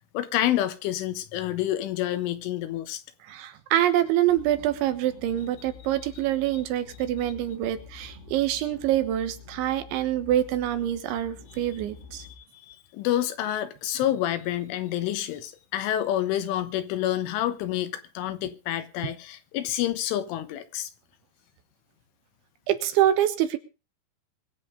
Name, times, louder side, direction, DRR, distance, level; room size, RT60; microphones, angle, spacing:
voice 1, 0.1-3.0 12.2-12.3 12.7-20.9, left 12 dB, 90° left, 3.8 m, -28 dB
voice 2, 3.3-12.2 22.7-23.6, right 12 dB, 75° right, 3.5 m, -25 dB
sound 1, 4.2-12.3, left 5 dB, 30° right, 5.3 m, -48 dB
23.0 x 7.9 x 5.1 m
omnidirectional pair, 5.5 m